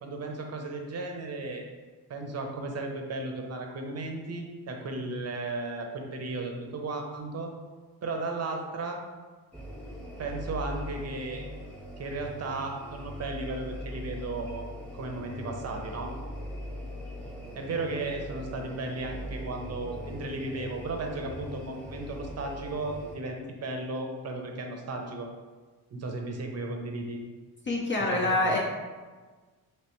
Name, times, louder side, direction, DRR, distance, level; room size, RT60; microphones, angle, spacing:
voice 1, 0.0-1.7 2.1-7.5 8.0-9.0 10.2-11.4 12.0-16.1 17.5-25.3 25.9-27.2 28.0-28.6, right 2 dB, 40° right, 2 dB, 0.6 m, -35 dB
sound 1, 9.5-23.1, equal, 5° left, 0.8 m, -41 dB
voice 2, 27.7-28.6, left 2 dB, 30° left, -2 dB, 0.5 m, -26 dB
3.2 x 3.1 x 3.0 m, 1.4 s
cardioid pair, 90°, 39 cm